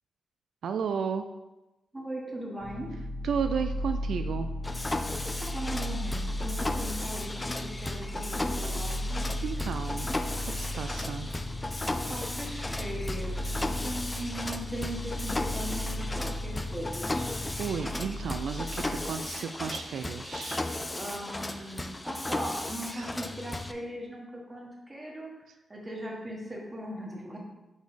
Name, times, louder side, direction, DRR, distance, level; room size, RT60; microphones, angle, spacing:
voice 1, 0.6-1.2 3.2-4.5 9.4-10.1 10.4-11.3 17.6-20.7 21.5-21.6 22.9-23.1, right 6 dB, 80° right, 8 dB, 0.3 m, -33 dB
voice 2, 1.9-2.9 5.4-9.0 11.8-17.3 20.9-27.4, right 1 dB, 20° right, -1 dB, 1.4 m, -39 dB
sound 1, 2.6-19.1, left 1 dB, 55° left, 0.9 m, -36 dB
Mechanisms, 4.6-23.7, left 2 dB, 15° left, 0.4 m, -35 dB
5.2 x 4.1 x 5.0 m, 1.0 s
wide cardioid pair, 110°, 0 cm